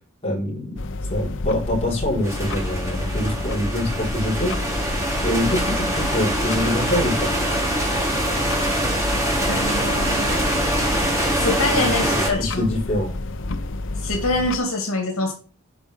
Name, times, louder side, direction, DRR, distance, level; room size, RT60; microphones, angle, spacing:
voice 1, 0.2-0.8 1.1-4.6 4.8-7.3 11.7-13.1, left 1 dB, 30° left, -4 dB, 5.1 m, -25 dB
sound 1, 0.8-14.6, left 2 dB, 60° left, 0.7 m, -30 dB
sound 2, 2.2-12.3, right 1 dB, 15° right, 3.7 m, -24 dB
voice 2, 9.5-10.4 11.4-12.7 14.0-15.3, left 2 dB, 75° left, 2 dB, 2.6 m, -25 dB
9.6 x 5.4 x 5.6 m, 0.38 s
head